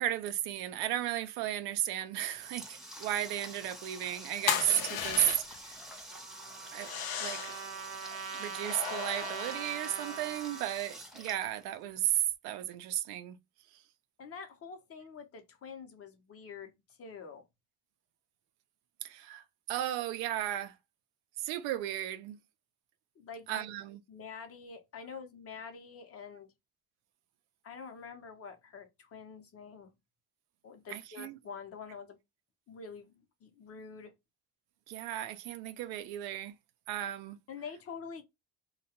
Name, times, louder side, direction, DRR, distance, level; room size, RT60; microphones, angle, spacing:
voice 1, 0.0-5.8 6.7-6.9 7.2-7.5 8.3-13.4 19.0-19.4 19.7-20.7 21.4-22.4 23.5-24.0 30.9-31.4 34.9-36.5 36.9-37.4, right 12 dB, 85° right, 0.5 m, -34 dB
Water tap faucet, 2.0-12.2, right 1 dB, ahead, 0.6 m, -48 dB
sound 1, 4.5-5.7 6.8-7.7 8.6-10.3, left 9 dB, 75° left, 0.6 m, -36 dB
Trumpet, 6.1-10.8, right 6 dB, 40° right, 0.6 m, -42 dB
voice 2, 14.2-17.4 23.2-23.7 24.1-26.5 27.6-29.9 30.6-32.2 32.7-34.1 37.5-38.2, left 5 dB, 40° left, 0.7 m, -46 dB
2.3 x 2.2 x 2.7 m
cardioid pair, 105°, 37 cm